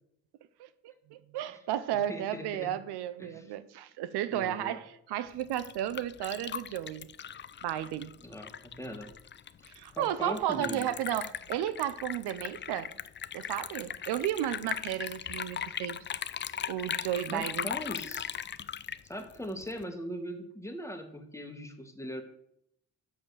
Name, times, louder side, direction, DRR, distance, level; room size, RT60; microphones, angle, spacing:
voice 1, 1.1-7.1 7.6-8.1 9.8-12.9 13.3-16.0 16.7-17.7, right 11 dB, 85° right, 0.6 m, -33 dB
voice 2, 1.9-2.7 3.2-3.5 4.3-4.8 8.2-9.1 9.9-10.9 17.3-18.3 19.1-22.2, equal, 5° left, 1.6 m, -40 dB
Liquid, 5.3-19.8, left 8 dB, 30° left, 0.4 m, -39 dB
6.5 x 5.7 x 6.9 m
cardioid pair, 65°, 38 cm